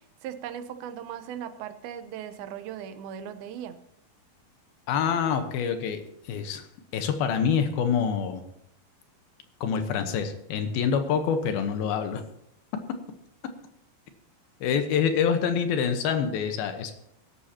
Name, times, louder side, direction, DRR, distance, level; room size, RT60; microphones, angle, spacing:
voice 1, 0.2-3.8, right 9 dB, 85° right, 10 dB, 2.7 m, -38 dB
voice 2, 4.9-6.0 6.3-6.6 6.9-8.4 9.6-12.2 14.6-16.9, left 7 dB, 85° left, 7 dB, 3.0 m, -26 dB
21.0 x 11.5 x 2.9 m, 0.76 s
omnidirectional pair, 4.3 m